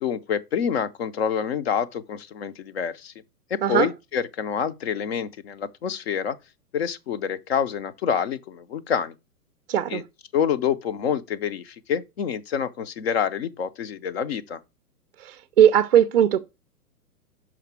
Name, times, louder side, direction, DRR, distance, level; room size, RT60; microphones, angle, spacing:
voice 1, 0.0-3.1 3.5-6.4 6.7-9.1 9.9-10.0 10.3-14.6, left 7 dB, 40° left, 0.5 m, -27 dB
voice 2, 9.7-10.0 15.2-16.4, right 10 dB, 40° right, 0.4 m, -19 dB
5.9 x 5.0 x 4.5 m
figure-of-eight pair, 125°, 48 cm